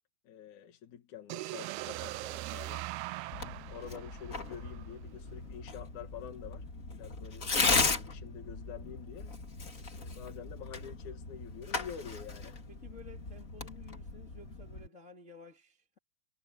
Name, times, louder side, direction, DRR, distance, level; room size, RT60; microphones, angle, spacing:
voice 1, 0.2-2.8 3.4-6.7 6.9-7.5 8.0-9.4 9.9-12.6, left 8 dB, 55° left, 2.7 m, -47 dB
sound 1, 1.3-5.2, right 18 dB, 90° right, 2.3 m, -41 dB
Tearing, 3.3-14.9, left 4 dB, 40° left, 1.2 m, -36 dB
voice 2, 12.7-16.0, left 4 dB, 70° left, 0.7 m, -53 dB
omnidirectional pair, 5.2 m